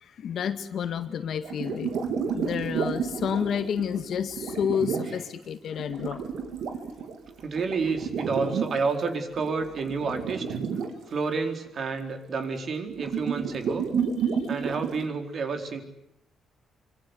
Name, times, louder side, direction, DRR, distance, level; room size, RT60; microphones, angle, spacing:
voice 1, 0.0-1.9 2.3-6.2, left 8 dB, 60° left, 9 dB, 2.0 m, -30 dB
sound 1, 1.4-5.2 5.8-8.8 9.4-10.9 12.9-15.1, right 6 dB, 75° right, 3.8 m, -30 dB
voice 2, 7.4-10.5 11.1-13.9 14.5-15.8, right 4 dB, 45° right, 5 dB, 4.2 m, -29 dB
25.5 x 25.5 x 8.2 m, 0.79 s
cardioid pair, 140°, 0 cm